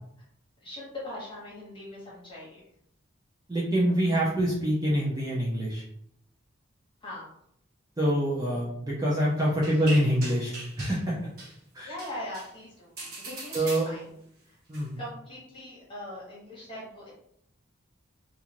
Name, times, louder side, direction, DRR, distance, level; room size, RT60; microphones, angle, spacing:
voice 1, 0.6-2.6 7.0-7.3 9.8-9.9 11.8-14.0 14.4-14.6 15.0-17.1, left 1 dB, 25° left, -7 dB, 1.3 m, -41 dB
voice 2, 3.5-5.8 8.0-11.1 11.7-11.9 13.5-13.9 14.7-15.0, equal, 20° right, -6 dB, 0.5 m, -26 dB
sound 1, 9.4-11.0 11.4-11.5 12.0-12.5 13.0-14.2 14.7-14.8, right 2 dB, 50° right, 0.8 m, -40 dB
2.6 x 2.4 x 2.9 m, 0.71 s
head